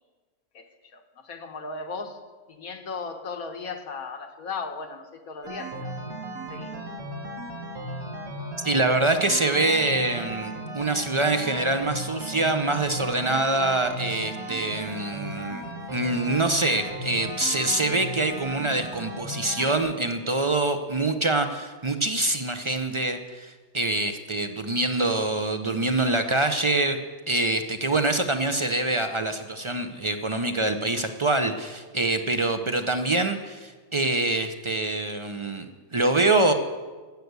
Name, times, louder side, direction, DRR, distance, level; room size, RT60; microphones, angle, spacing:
voice 1, 1.3-2.2 2.6-6.0 6.5-6.8, left 4 dB, 85° left, 5 dB, 1.6 m, -36 dB
sound 1, 5.4-19.8, right 1 dB, 85° right, 2.5 m, -36 dB
voice 2, 8.6-27.0 27.3-36.5, right 2 dB, 50° right, 8 dB, 0.3 m, -25 dB
11.5 x 8.0 x 8.0 m, 1.4 s
omnidirectional pair, 1.5 m